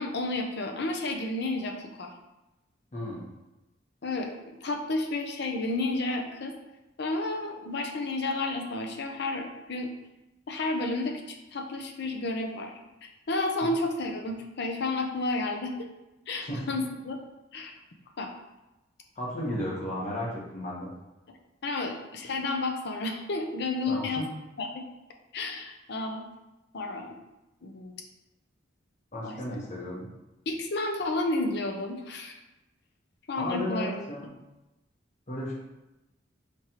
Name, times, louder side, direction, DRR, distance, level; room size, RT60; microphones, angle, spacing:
voice 1, 0.0-2.1 4.0-6.6 7.0-9.9 10.5-11.2 11.5-12.7 13.0-15.9 16.3-17.2 17.5-17.7 18.2-18.3 21.6-24.2 24.6-24.8 25.3-26.2 26.7-27.2 27.6-27.9 29.2-29.3 30.5-32.4 33.3-33.9, left 2 dB, 60° left, 3 dB, 0.6 m, -31 dB
voice 2, 2.9-3.3 16.4-16.7 19.2-20.9 23.9-24.2 29.1-30.1 33.4-34.3 35.3-35.5, left 1 dB, 40° left, -4 dB, 1.1 m, -34 dB
5.1 x 3.2 x 2.9 m, 0.99 s
head